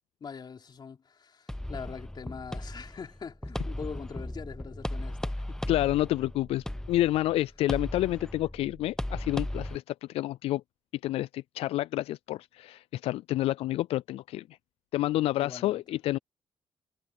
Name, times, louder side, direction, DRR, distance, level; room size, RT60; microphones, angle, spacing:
voice 1, 0.2-5.8 15.4-16.0, left 6 dB, 45° left, 3.9 m, -43 dB
sound 1, 1.5-9.8, left 1 dB, 5° left, 1.0 m, -36 dB
voice 2, 5.7-10.6 11.0-14.5 14.9-16.2, left 15 dB, 85° left, 0.4 m, -29 dB
cardioid pair, 85°, 10 cm